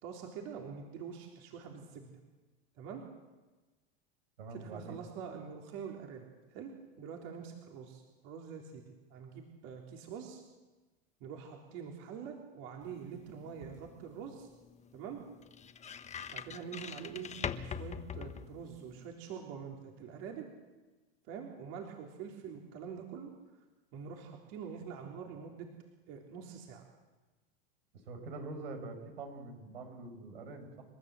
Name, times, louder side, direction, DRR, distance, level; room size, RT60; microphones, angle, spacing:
voice 1, 0.0-2.1 2.8-3.0 4.5-6.7 7.0-10.4 11.2-14.5 14.9-15.2 16.3-20.5 21.3-23.3 23.9-25.7 26.1-26.9, right 7 dB, 55° right, 0 dB, 3.7 m, -45 dB
voice 2, 4.4-5.0 27.9-30.9, right 3 dB, 85° right, 6 dB, 5.6 m, -45 dB
sound 1, 12.8-19.1, left 7 dB, 25° left, 1.4 m, -44 dB
29.5 x 14.0 x 7.8 m, 1.2 s
hypercardioid pair, 110°, 30 cm